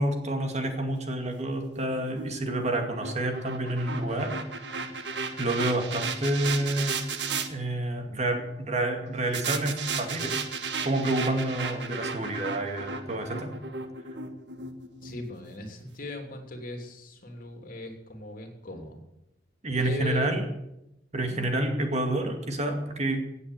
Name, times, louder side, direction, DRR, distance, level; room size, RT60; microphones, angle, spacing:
voice 1, 0.0-4.3 5.4-7.1 7.5-10.4 10.8-13.5 19.6-20.5 21.1-23.2, right 1 dB, 40° right, 4 dB, 2.3 m, -28 dB
sound 1, 1.3-7.5 9.3-15.6, right 4 dB, 80° right, 1.5 m, -35 dB
voice 2, 15.0-19.0 19.7-20.3 21.3-21.4, left 1 dB, 55° left, 4 dB, 3.1 m, -38 dB
17.0 x 8.3 x 8.2 m, 0.86 s
head